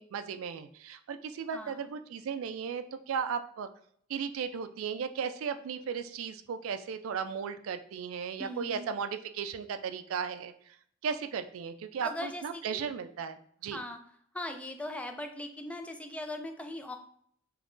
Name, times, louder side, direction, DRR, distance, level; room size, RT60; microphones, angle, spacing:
voice 1, 0.0-3.7 4.1-10.5 11.0-13.4 13.6-13.8, right 6 dB, 80° right, 9 dB, 0.3 m, -36 dB
voice 2, 1.5-1.8 8.4-8.9 12.0-12.9 13.7-14.0 14.3-17.0, left 1 dB, 5° left, 5 dB, 0.3 m, -39 dB
3.1 x 2.5 x 3.6 m, 0.63 s
head